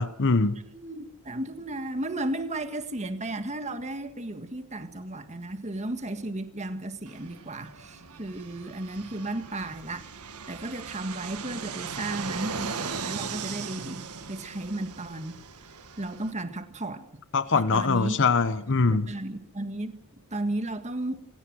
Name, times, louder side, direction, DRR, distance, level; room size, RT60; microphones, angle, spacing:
voice 1, 0.0-0.6 17.3-19.1, left 4 dB, 55° left, 1.0 m, -23 dB
voice 2, 0.7-10.1 10.5-14.0 14.3-15.4 16.0-17.1 17.5-18.3 18.9-20.0 20.3-21.3, right 1 dB, 30° right, 1.7 m, -34 dB
Fixed-wing aircraft airplane, 7.1-16.3, right 5 dB, 85° right, 1.6 m, -38 dB
26.5 x 18.0 x 6.3 m
head